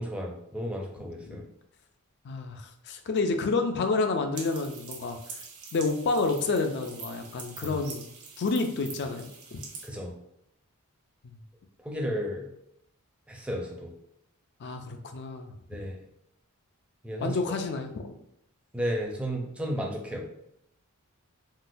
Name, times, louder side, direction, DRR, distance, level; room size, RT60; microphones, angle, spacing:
voice 1, 0.0-1.4 7.6-7.7 9.8-10.1 11.8-12.5 13.3-13.9 15.7-16.0 17.0-17.4 18.7-20.2, equal, 5° right, 0 dB, 0.5 m, -33 dB
voice 2, 2.2-5.2 5.7-8.1 8.4-9.6 11.2-11.4 14.6-15.5 17.2-18.0, left 3 dB, 50° left, 6 dB, 0.4 m, -29 dB
sound 1, 4.3-9.9, right 5 dB, 75° right, 0.8 m, -44 dB
3.7 x 2.2 x 2.6 m, 0.76 s
head